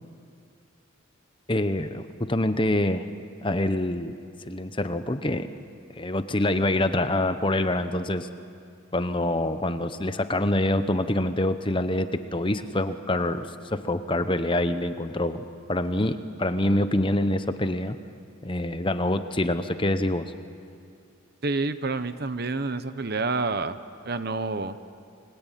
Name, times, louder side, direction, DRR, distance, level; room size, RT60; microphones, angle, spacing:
voice 1, 1.5-3.1 3.4-4.1 4.5-5.5 6.0-8.3 8.9-18.0 18.4-20.3, left 1 dB, 25° left, 10 dB, 1.0 m, -26 dB
voice 2, 21.4-23.8 24.0-24.8, right 3 dB, 45° right, 12 dB, 1.0 m, -28 dB
30.0 x 21.5 x 9.2 m, 2.4 s
head